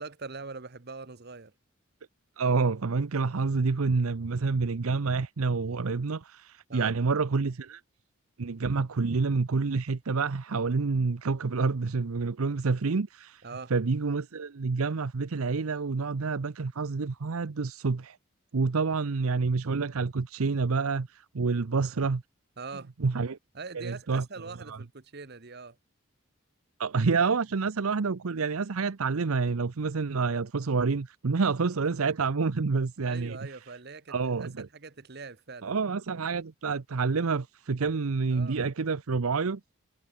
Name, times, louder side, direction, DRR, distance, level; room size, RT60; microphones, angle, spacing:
voice 1, 0.0-1.5 6.7-6.9 13.4-13.7 22.6-22.9 23.5-25.8 33.0-35.7 38.3-38.6, right 4 dB, 50° right, 1.1 m, -42 dB
voice 2, 2.4-7.8 8.4-13.4 13.7-18.2 18.5-22.2 23.0-23.4 23.7-24.2 24.7-24.8 26.8-33.4 34.1-34.7 35.6-39.6, right 4 dB, 85° right, 0.7 m, -28 dB
head